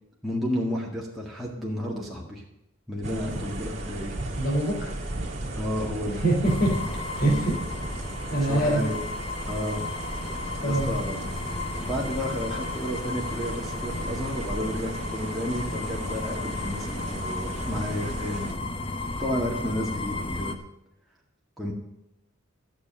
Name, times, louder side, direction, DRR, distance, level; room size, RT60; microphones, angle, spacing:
voice 1, 0.2-2.4 2.9-4.2 5.6-6.2 8.3-9.0 9.5-9.9 10.3-11.3 11.8-18.5 19.2-20.6 21.6-21.7, equal, ahead, -5 dB, 1.8 m, -32 dB
sound 1, 3.0-18.5, right 2 dB, 35° right, 2.5 m, -36 dB
voice 2, 4.4-5.0 6.2-6.7 7.2-7.5 8.3-8.8 10.6-10.9, right 2 dB, 45° left, 0 dB, 3.6 m, -24 dB
sound 2, 6.4-20.6, left 2 dB, 25° left, 0.9 m, -34 dB
13.0 x 7.3 x 7.4 m, 0.88 s
head